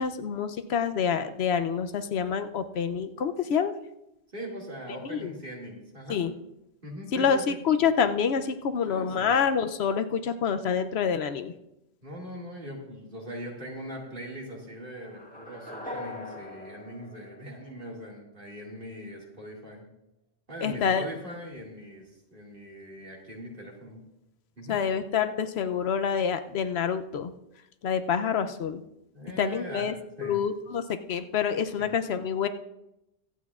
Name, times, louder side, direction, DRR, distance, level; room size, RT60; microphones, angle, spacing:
voice 1, 0.0-3.7 5.1-5.3 6.1-6.3 7.1-11.5 20.6-21.1 24.7-27.3 27.8-28.8 29.4-29.9 30.2-30.8 31.1-32.5, left 7 dB, 75° left, 9 dB, 0.9 m, -27 dB
voice 2, 4.3-6.3 6.8-7.4 8.8-9.3 12.0-19.9 20.5-24.0 24.6-24.8 29.1-29.9 30.2-30.4 31.8-31.9, equal, 50° right, -2 dB, 2.4 m, -41 dB
sound 1, 15.0-18.1, left 1 dB, 10° left, 1.5 m, -42 dB
24.0 x 8.4 x 2.4 m, 0.89 s
omnidirectional pair, 1.1 m